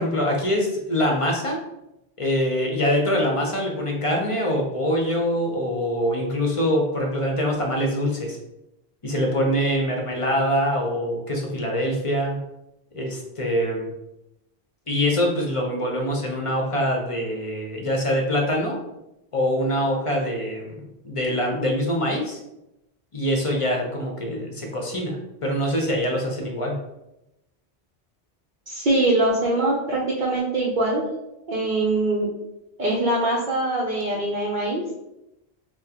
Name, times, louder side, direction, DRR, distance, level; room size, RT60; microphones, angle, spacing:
voice 1, 0.0-1.6 2.2-8.4 9.0-12.4 12.9-13.9 14.9-18.8 19.3-20.7 21.0-22.4 23.1-26.8, equal, 35° left, 0 dB, 0.7 m, -24 dB
voice 2, 28.7-31.1 31.5-32.3 32.8-34.8, right 2 dB, 55° right, -5 dB, 0.8 m, -23 dB
5.9 x 2.1 x 2.8 m, 0.90 s
omnidirectional pair, 1.1 m